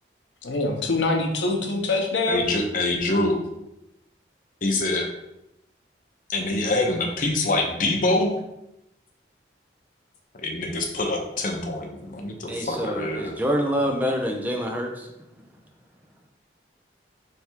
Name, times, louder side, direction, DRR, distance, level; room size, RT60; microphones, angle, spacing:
voice 1, 0.4-2.4, left 2 dB, 85° left, 2 dB, 0.8 m, -24 dB
voice 2, 2.3-3.4 4.6-5.1 6.3-8.3 10.3-13.3, left 2 dB, 45° left, 2 dB, 0.7 m, -25 dB
voice 3, 12.5-15.1, equal, 10° right, 2 dB, 0.4 m, -26 dB
3.4 x 3.3 x 4.5 m, 0.86 s
head